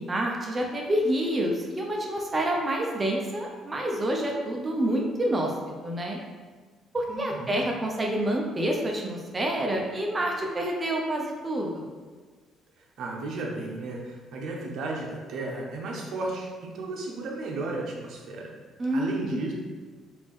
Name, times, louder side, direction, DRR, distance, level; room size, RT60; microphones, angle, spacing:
voice 1, 0.1-5.5 5.8-6.2 6.9-11.9 18.8-19.4, right 1 dB, 25° right, 0 dB, 0.5 m, -28 dB
voice 2, 7.1-7.6 13.0-18.5 18.9-19.5, right 2 dB, 65° right, -1 dB, 0.7 m, -34 dB
3.3 x 2.5 x 3.6 m, 1.4 s
cardioid pair, 120°, 0 cm